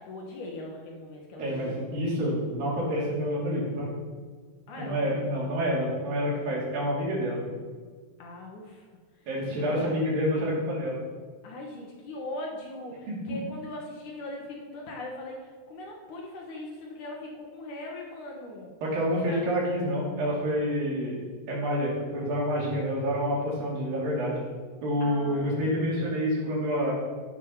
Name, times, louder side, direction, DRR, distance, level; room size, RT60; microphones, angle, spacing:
voice 1, 0.0-2.7 4.7-5.6 8.2-8.9 9.5-10.2 11.4-18.7 19.3-19.4 25.0-26.0, left 1 dB, 70° left, 0 dB, 2.6 m, -40 dB
voice 2, 1.4-3.9 4.8-7.4 9.3-11.0 13.1-13.4 18.8-21.2 21.5-24.4 24.8-26.9, equal, 85° right, -5 dB, 4.6 m, -28 dB
15.5 x 6.2 x 5.8 m, 1.5 s
omnidirectional pair, 3.9 m